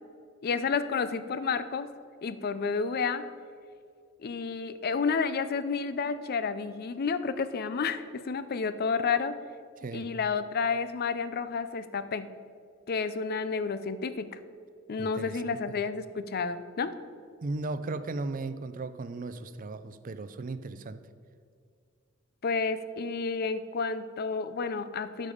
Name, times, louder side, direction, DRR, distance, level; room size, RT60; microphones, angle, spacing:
voice 1, 0.4-1.9 2.2-3.2 4.2-9.4 9.9-12.3 12.9-14.4 14.9-16.9 22.4-25.3, left 5 dB, 50° left, 12 dB, 0.5 m, -30 dB
voice 2, 15.0-15.8 17.4-21.0, right 3 dB, 40° right, 12 dB, 0.5 m, -36 dB
12.5 x 5.3 x 5.0 m, 2.2 s
head